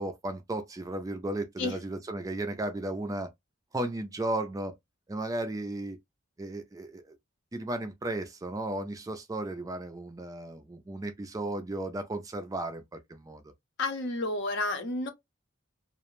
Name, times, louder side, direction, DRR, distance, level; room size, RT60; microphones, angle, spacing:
voice 1, 0.0-3.3 3.7-4.7 5.1-6.0 6.4-7.2 7.5-13.5, right 1 dB, 15° right, 0.3 m, -35 dB
voice 2, 13.8-15.1, left 2 dB, 60° left, 0.6 m, -30 dB
2.4 x 2.0 x 3.0 m
head